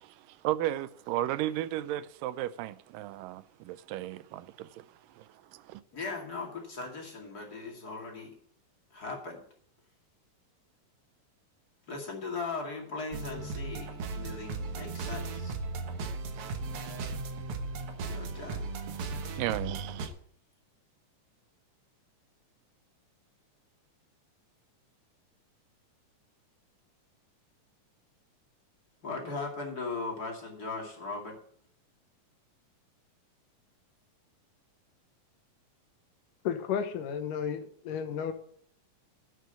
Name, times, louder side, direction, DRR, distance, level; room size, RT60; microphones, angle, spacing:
voice 1, 0.0-5.8 18.9-20.1, right 14 dB, 90° right, 2.3 m, -35 dB
voice 2, 5.9-8.4 8.9-9.4 11.9-15.5 17.9-18.7 29.0-31.4, left 3 dB, 30° left, 2.5 m, -38 dB
sound 1, 13.1-20.1, right 3 dB, 60° right, 1.6 m, -36 dB
voice 3, 36.4-38.3, left 8 dB, 75° left, 2.6 m, -33 dB
11.5 x 6.3 x 8.0 m
omnidirectional pair, 3.9 m